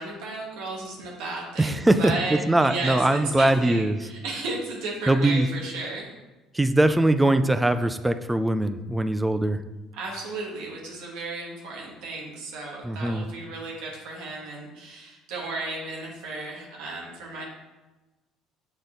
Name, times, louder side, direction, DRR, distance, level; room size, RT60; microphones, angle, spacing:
voice 1, 0.0-6.1 10.0-17.4, right 3 dB, 90° right, -2 dB, 1.5 m, -34 dB
voice 2, 1.6-4.0 5.1-5.5 6.5-9.6 12.8-13.2, right 1 dB, 10° right, 11 dB, 0.3 m, -22 dB
6.9 x 4.1 x 3.8 m, 1.1 s
cardioid pair, 125°, 0 cm